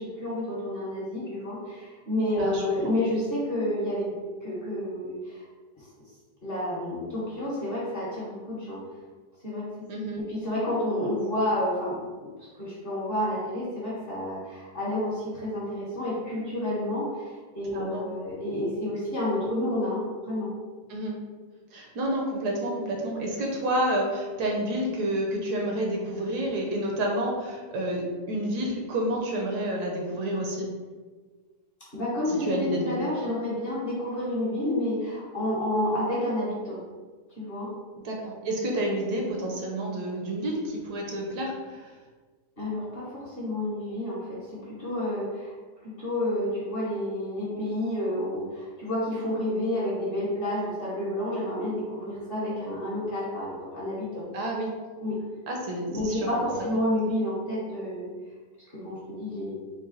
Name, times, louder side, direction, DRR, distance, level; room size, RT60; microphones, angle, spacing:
voice 1, 0.0-5.5 5.8-5.9 6.4-8.8 9.4-9.7 10.1-20.5 31.8-36.8 37.4-37.7 42.6-45.5 45.8-54.3 55.0-55.2 55.9-58.1 58.7-59.5, left 1 dB, 40° left, -7 dB, 1.0 m, -30 dB
voice 2, 2.4-2.9 9.9-10.2 17.7-18.0 20.9-21.2 21.7-30.7 32.3-33.0 38.0-41.9 54.3-54.7 55.5-56.3, right 1 dB, 70° right, 0 dB, 1.2 m, -29 dB
3.9 x 2.2 x 3.7 m, 1.4 s
omnidirectional pair, 1.8 m